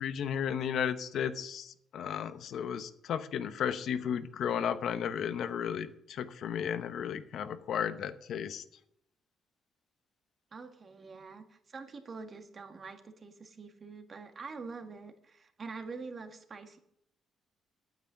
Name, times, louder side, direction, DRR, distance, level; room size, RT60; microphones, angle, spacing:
voice 1, 0.0-8.6, left 8 dB, 70° left, 11 dB, 0.8 m, -34 dB
voice 2, 10.5-16.8, right 4 dB, 40° right, 6 dB, 1.6 m, -45 dB
9.2 x 8.2 x 7.4 m, 0.75 s
cardioid pair, 90°, 0 cm